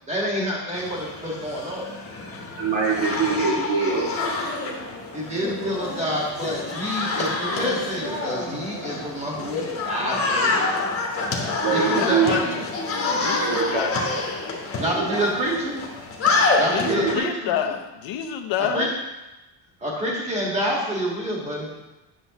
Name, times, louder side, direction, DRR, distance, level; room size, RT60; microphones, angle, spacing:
voice 1, 0.1-1.9 5.1-10.8 11.7-12.6 14.8-15.9 16.6-17.5 18.6-18.9 19.8-21.7, equal, 15° right, -4 dB, 1.8 m, -27 dB
sound 1, 0.7-17.2, left 3 dB, 30° left, 1.2 m, -27 dB
voice 2, 2.6-4.2 11.6-12.3 13.4-13.8 14.7-15.4 16.8-17.2, right 5 dB, 70° right, -3 dB, 2.4 m, -24 dB
voice 3, 11.9-12.6 13.2-14.0 16.7-18.9, left 9 dB, 75° left, 5 dB, 0.9 m, -28 dB
10.0 x 6.8 x 3.0 m, 1.0 s
cardioid pair, 175°, 47 cm